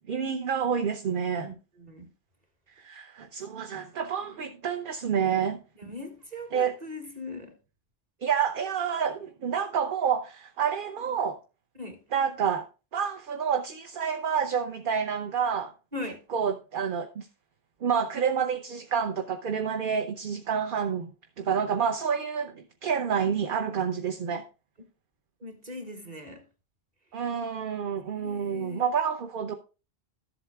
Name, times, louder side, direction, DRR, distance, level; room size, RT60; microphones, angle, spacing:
voice 1, 0.1-1.5 2.8-5.6 6.5-6.7 8.2-11.4 12.1-12.7 12.9-15.7 16.3-17.3 17.8-21.1 21.4-24.4 27.1-29.5, right 7 dB, 55° right, 0.8 m, -28 dB
voice 2, 1.4-2.1 5.8-7.6 11.8-12.0 15.9-16.2 25.4-26.4 28.1-28.9, left 2 dB, 40° right, 1.7 m, -40 dB
13.0 x 7.9 x 2.3 m
omnidirectional pair, 1.1 m